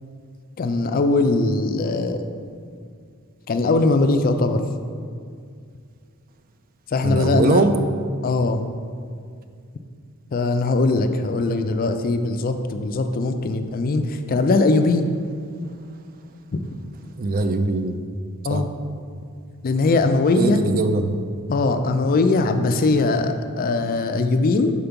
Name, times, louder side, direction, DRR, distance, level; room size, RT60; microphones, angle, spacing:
voice 1, 0.6-2.3 3.5-4.6 6.9-7.6 8.2-8.7 10.3-15.1 16.5-16.6 18.4-18.7 19.6-20.6 21.5-24.7, left 3 dB, 40° left, 7 dB, 0.4 m, -20 dB
voice 2, 7.0-7.7 17.2-17.9 18.5-18.6 20.3-21.1, right 3 dB, 40° right, 8 dB, 0.4 m, -21 dB
5.8 x 4.3 x 5.2 m, 2.2 s
head